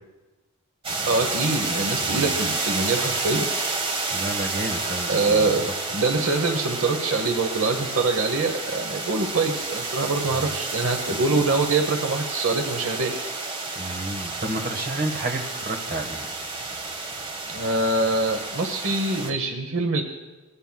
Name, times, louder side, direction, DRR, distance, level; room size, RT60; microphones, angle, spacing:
sound 1, 0.8-19.3, right 3 dB, 25° right, 1.0 m, -30 dB
voice 1, 1.1-3.4 5.1-13.1 17.5-20.0, right 3 dB, 65° right, 5 dB, 1.0 m, -24 dB
voice 2, 4.1-5.5 13.7-16.2, right 1 dB, 40° right, 3 dB, 1.4 m, -30 dB
20.5 x 15.5 x 2.3 m, 1.2 s
head